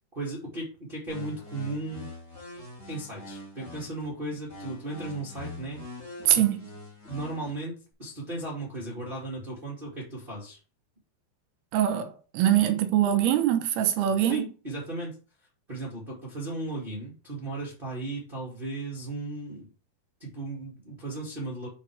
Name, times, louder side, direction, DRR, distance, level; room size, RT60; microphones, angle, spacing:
voice 1, 0.1-2.1 2.9-5.8 6.3-6.4 7.0-10.6 14.3-15.1 15.7-19.7 20.2-21.7, right 2 dB, 20° right, 1.7 m, -36 dB
sound 1, 1.1-4.1 4.5-7.5, left 2 dB, 20° left, 2.2 m, -43 dB
voice 2, 6.2-6.6 11.7-14.5, right 11 dB, 85° right, 2.9 m, -23 dB
7.3 x 4.7 x 4.8 m
omnidirectional pair, 4.5 m